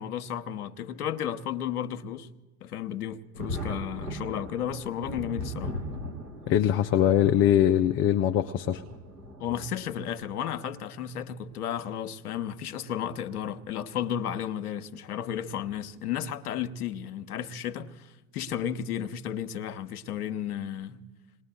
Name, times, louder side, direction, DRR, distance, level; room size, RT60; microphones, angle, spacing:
voice 1, 0.0-2.3 2.6-5.8 9.4-21.0, left 9 dB, 70° left, 0.9 m, -33 dB
Thunder, 3.3-10.4 11.4-11.5 13.0-13.2 13.6-13.7 15.6-15.9 16.6-16.9, equal, 85° right, 2.4 m, -39 dB
voice 2, 6.5-8.8, left 10 dB, 30° left, 0.5 m, -22 dB
28.0 x 19.5 x 2.3 m
figure-of-eight pair, 85°, 46 cm